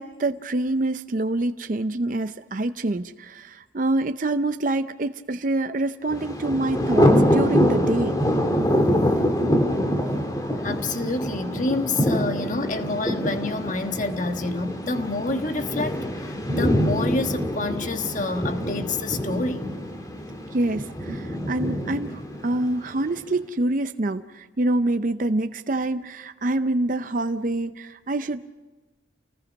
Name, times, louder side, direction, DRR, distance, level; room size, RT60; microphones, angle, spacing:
voice 1, 0.0-8.2 20.5-28.4, right 2 dB, 45° right, 0.6 m, -26 dB
Thunder, 6.1-23.1, equal, 20° left, 1.8 m, -25 dB
voice 2, 10.6-19.7, left 2 dB, 40° left, 1.4 m, -28 dB
29.0 x 20.0 x 5.3 m
head